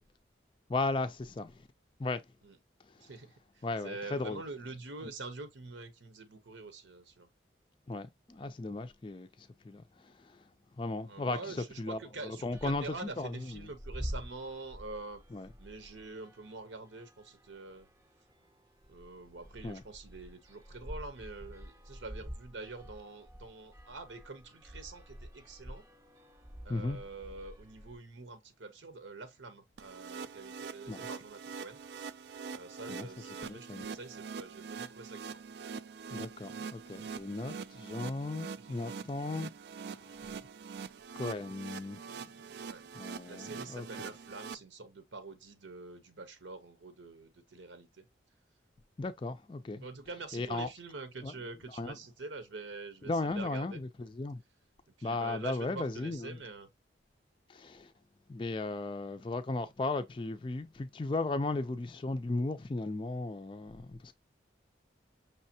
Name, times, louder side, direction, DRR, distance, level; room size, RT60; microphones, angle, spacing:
voice 1, 0.7-1.7 2.0-2.2 2.8-3.1 3.6-4.4 7.9-10.5 10.7-13.7 15.3-15.5 19.6-19.8 26.7-27.0 30.9-31.1 32.9-33.1 33.4-33.9 36.1-39.5 39.9-40.1 41.2-42.6 42.9-43.9 49.0-49.8 50.3-50.7 51.2-51.3 51.8-52.0 53.0-54.4 55.0-56.4 57.5-57.9 58.3-64.1, left 2 dB, 25° left, 0.4 m, -36 dB
voice 2, 3.0-7.3 11.1-15.2 15.6-17.9 18.9-25.9 26.6-31.8 32.5-35.4 42.5-42.8 43.2-48.0 49.8-53.8 55.0-56.7, right 3 dB, 85° right, 0.9 m, -46 dB
sound 1, 12.4-28.0, equal, 15° right, 0.6 m, -48 dB
sound 2, 29.8-44.5, right 5 dB, 60° right, 0.3 m, -44 dB
5.6 x 3.2 x 2.7 m
head